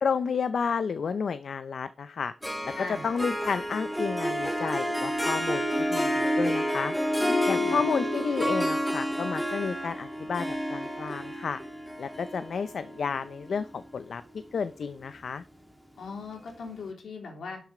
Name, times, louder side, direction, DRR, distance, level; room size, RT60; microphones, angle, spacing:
voice 1, 0.0-2.3 2.6-2.7 3.0-6.9 7.5-11.6 12.0-14.2 14.5-15.4, left 5 dB, 70° left, 12 dB, 0.6 m, -31 dB
Harp, 2.4-13.8, equal, ahead, 1.7 m, -29 dB
voice 2, 2.7-3.0 7.2-7.8 16.0-17.6, left 4 dB, 85° left, 2 dB, 3.4 m, -39 dB
11.5 x 6.3 x 4.9 m, 0.40 s
wide cardioid pair, 105°, 0 cm